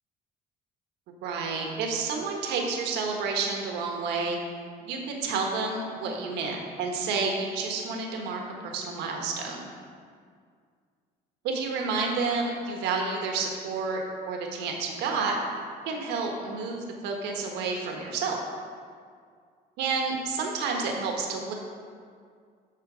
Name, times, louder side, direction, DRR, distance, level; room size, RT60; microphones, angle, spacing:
voice 1, 1.2-4.4 4.8-9.7 11.4-15.4 15.8-18.4 19.8-21.5, right 4 dB, 90° right, 1 dB, 1.4 m, -30 dB
13.0 x 4.5 x 5.0 m, 2.1 s
cardioid pair, 110°, 17 cm